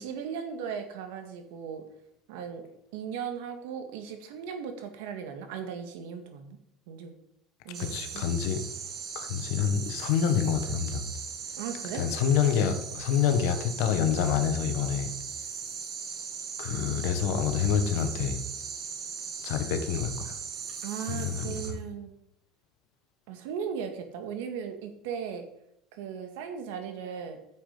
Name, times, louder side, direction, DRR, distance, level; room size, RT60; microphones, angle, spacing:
voice 1, 0.0-1.8 2.3-2.7 2.9-6.6 6.9-7.1 7.6-8.2 11.5-12.0 20.8-22.1 23.3-25.4 25.9-27.4, right 7 dB, 85° right, 6 dB, 1.9 m, -37 dB
sound 1, 7.7-21.7, right 6 dB, 45° right, 2.1 m, -39 dB
voice 2, 7.8-8.6 9.1-11.1 11.9-15.1 16.6-18.4 19.4-20.3 21.1-21.5, left 8 dB, 75° left, 8 dB, 1.5 m, -27 dB
9.9 x 7.6 x 5.2 m, 0.74 s
supercardioid pair, 110°, 0 cm